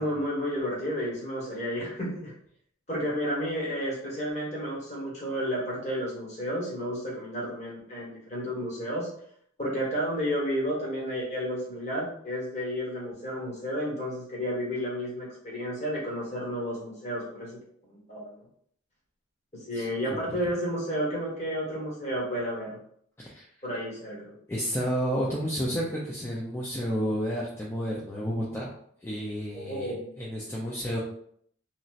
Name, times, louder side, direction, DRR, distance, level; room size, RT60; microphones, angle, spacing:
voice 1, 0.0-2.3 2.9-9.1 9.6-17.6 17.9-18.4 19.7-22.8 23.6-24.3 29.5-30.1, equal, 35° left, -5 dB, 1.1 m, -31 dB
voice 2, 19.7-20.2 23.2-23.5 24.5-28.7 29.0-31.0, equal, 10° left, -5 dB, 0.3 m, -31 dB
3.0 x 2.7 x 2.4 m, 0.65 s
head